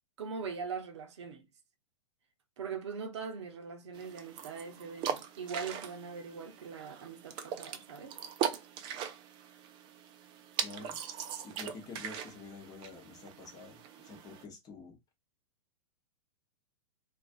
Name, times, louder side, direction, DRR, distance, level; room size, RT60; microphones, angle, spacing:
voice 1, 0.2-1.5 2.6-8.2, right 5 dB, 65° right, 0.7 m, -41 dB
sound 1, 3.9-14.4, right 8 dB, 30° right, 0.4 m, -40 dB
voice 2, 10.6-11.0 11.4-15.0, left 4 dB, 25° left, 0.9 m, -48 dB
2.4 x 2.4 x 2.4 m
figure-of-eight pair, 105°, 16 cm